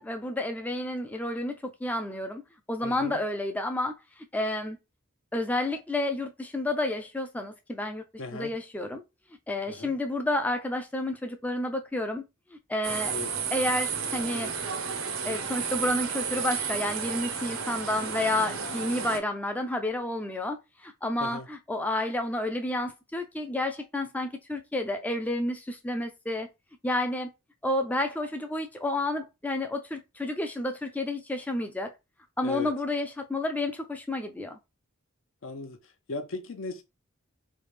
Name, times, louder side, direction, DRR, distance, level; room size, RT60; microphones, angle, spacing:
voice 1, 0.0-2.4 2.7-4.8 5.3-8.0 8.3-9.0 9.5-12.2 12.5-13.1 13.5-14.5 15.2-26.5 26.8-27.3 27.6-31.9 32.4-34.6, left 1 dB, 10° left, 0.3 m, -30 dB
voice 2, 2.8-3.2 8.2-8.6 9.7-10.0 13.1-13.3 21.2-21.5 32.4-32.7 35.4-35.8 36.1-36.8, left 3 dB, 70° left, 0.6 m, -37 dB
sound 1, 12.8-19.2, right 6 dB, 80° right, 0.6 m, -32 dB
3.2 x 2.4 x 3.2 m
head